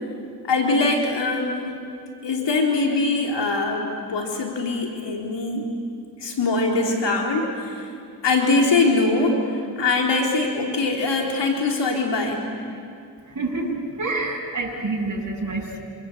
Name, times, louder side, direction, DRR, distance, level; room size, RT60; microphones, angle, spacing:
voice 1, 0.4-1.8 2.2-5.7 6.2-7.9 8.2-12.4, left 3 dB, 70° left, 1 dB, 4.2 m, -22 dB
voice 2, 13.3-15.8, right 2 dB, 40° right, -2 dB, 7.9 m, -27 dB
27.5 x 26.0 x 8.3 m, 2.4 s
supercardioid pair, 45°, 44 cm